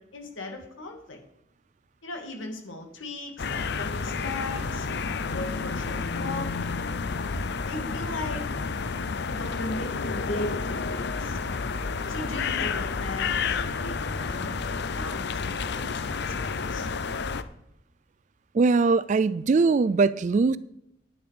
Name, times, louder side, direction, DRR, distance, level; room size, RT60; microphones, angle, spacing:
voice 1, 0.1-1.2 2.0-4.9 5.2-6.5 7.7-8.4 9.3-11.4 12.1-14.6 14.9-16.9, left 2 dB, 70° left, 2.6 m, -37 dB
sound 1, 3.4-17.4, left 5 dB, 55° left, 0.6 m, -30 dB
voice 2, 18.5-20.6, right 4 dB, 40° right, 0.3 m, -21 dB
10.5 x 9.5 x 5.0 m
head